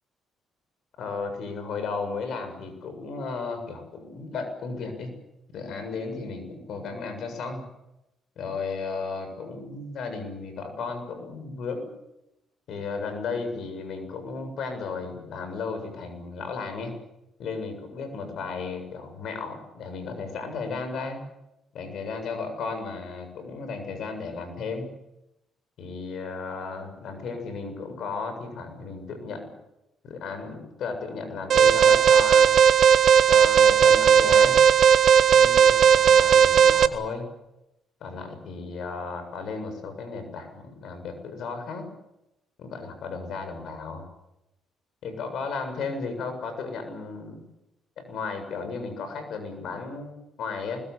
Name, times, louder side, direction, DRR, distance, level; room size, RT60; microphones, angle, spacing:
voice 1, 1.0-5.1 5.5-7.6 8.4-11.9 12.7-17.0 17.4-21.2 21.7-24.9 25.8-29.5 30.0-32.5 33.3-34.6 35.3-37.2 38.0-41.8 42.6-44.0 45.0-47.5 48.0-50.8, left 4 dB, 65° left, 7 dB, 7.1 m, -34 dB
Alarm, 31.5-36.9, right 8 dB, 60° right, 1.5 m, -16 dB
25.0 x 21.5 x 8.4 m, 0.91 s
hypercardioid pair, 55°, 0 cm